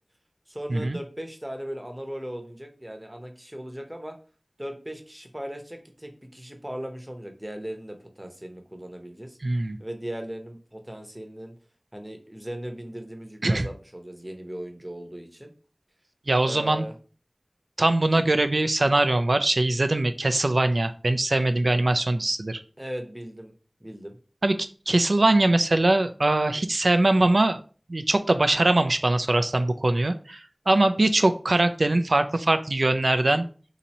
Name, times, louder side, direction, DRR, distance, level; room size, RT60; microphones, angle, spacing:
voice 1, 0.5-4.2 4.6-9.4 9.8-11.5 11.9-15.5 16.4-16.9 22.8-23.5 23.8-24.2, equal, 20° right, 4 dB, 0.7 m, -38 dB
voice 2, 9.4-9.8 13.4-13.7 16.3-16.8 17.8-22.6 24.4-24.5 24.9-27.6 27.9-30.4 30.7-33.4, right 2 dB, 85° right, 9 dB, 0.3 m, -22 dB
2.9 x 2.6 x 4.1 m, 0.38 s
wide cardioid pair, 45°, 0 cm